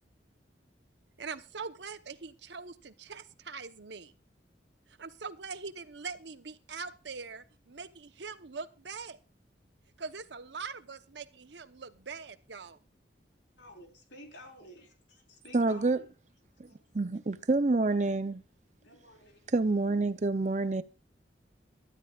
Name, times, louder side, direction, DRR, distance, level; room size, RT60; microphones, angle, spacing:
voice 1, 1.2-4.1 5.0-9.2 10.0-12.8, right 5 dB, 75° right, 0.9 m, -42 dB
voice 2, 13.6-16.1 16.7-16.8 18.8-19.5, left 1 dB, 80° left, 4.3 m, -52 dB
voice 3, 15.5-16.0 16.9-18.4 19.5-20.8, right 3 dB, 40° right, 0.6 m, -27 dB
23.0 x 12.5 x 2.4 m
head